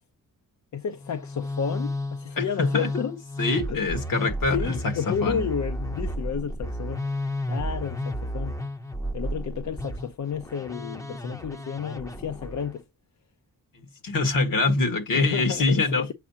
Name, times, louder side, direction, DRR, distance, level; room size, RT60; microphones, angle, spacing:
voice 1, 0.7-3.2 3.7-3.9 4.5-7.2 7.5-8.6 9.1-12.8 15.1-16.1, left 7 dB, 55° left, 0.6 m, -31 dB
Musical instrument, 1.0-12.7, left 1 dB, 10° left, 0.7 m, -32 dB
voice 2, 2.4-2.9 3.4-4.9 5.2-5.4 14.0-16.1, left 3 dB, 70° left, 1.7 m, -24 dB
7.5 x 4.6 x 2.8 m
wide cardioid pair, 105°, 34 cm